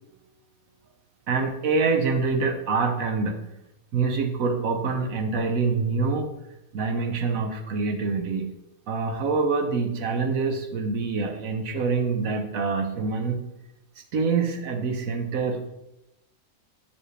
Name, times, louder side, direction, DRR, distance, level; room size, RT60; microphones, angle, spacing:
voice 1, 1.3-3.4 3.9-6.3 6.7-8.5 8.9-13.4 14.1-15.7, right 4 dB, 70° right, 5 dB, 1.3 m, -25 dB
7.5 x 7.0 x 3.3 m, 0.89 s
omnidirectional pair, 1.5 m